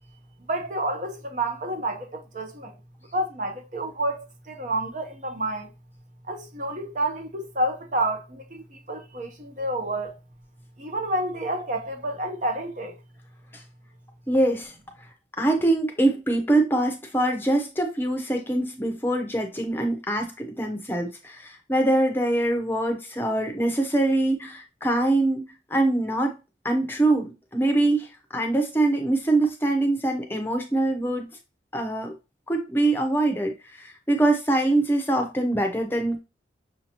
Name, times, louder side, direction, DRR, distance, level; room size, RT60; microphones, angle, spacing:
voice 1, 0.5-2.7 3.1-5.7 6.3-10.2 10.8-13.0, right 1 dB, 40° right, 0.8 m, -29 dB
voice 2, 14.3-14.7 15.4-26.3 26.6-31.3 31.7-32.1 32.5-36.2, right 2 dB, 10° left, 0.7 m, -24 dB
6.2 x 2.8 x 2.9 m
head